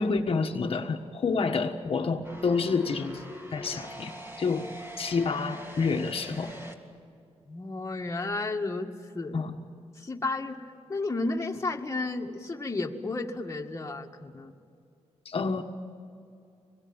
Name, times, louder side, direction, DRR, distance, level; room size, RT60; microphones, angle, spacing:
voice 1, 0.0-3.2 3.5-6.5 9.3-9.6 15.2-15.6, left 4 dB, 55° left, 2 dB, 1.5 m, -28 dB
sound 1, 2.2-6.7, equal, 20° right, 3.1 m, -43 dB
voice 2, 7.5-8.9 9.1-9.4 10.0-10.6 10.9-14.5, left 3 dB, 25° left, 1 dB, 1.9 m, -32 dB
26.0 x 21.0 x 8.9 m, 2.5 s
wide cardioid pair, 105°, 11 cm